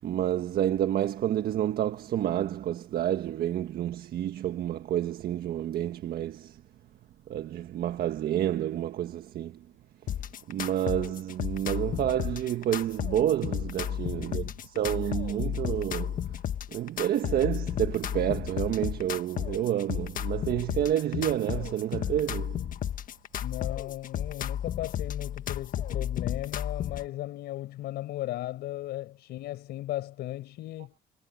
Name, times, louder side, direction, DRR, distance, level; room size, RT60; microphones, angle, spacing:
voice 1, 0.0-6.6 7.3-9.6 10.5-16.3 16.7-22.7, right 11 dB, 65° right, 1.6 m, -29 dB
sound 1, 10.1-27.1, left 10 dB, 55° left, 1.5 m, -33 dB
voice 2, 14.2-14.6 23.4-31.0, left 15 dB, 75° left, 5.2 m, -36 dB
cardioid pair, 110°, 17 cm